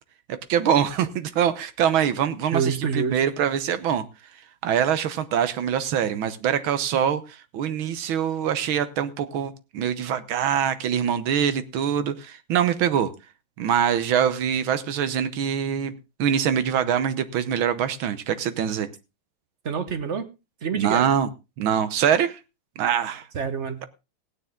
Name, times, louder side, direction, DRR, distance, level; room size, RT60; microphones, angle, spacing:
voice 1, 0.3-4.1 4.6-13.1 13.6-18.9 20.7-21.3 21.6-22.4 22.8-23.3, right 8 dB, 75° right, 13 dB, 1.7 m, -24 dB
voice 2, 2.5-3.2 19.6-20.3 20.6-21.1 23.3-23.8, right 6 dB, 45° right, 11 dB, 1.1 m, -26 dB
16.5 x 9.4 x 3.6 m, 0.27 s
omnidirectional pair, 2.3 m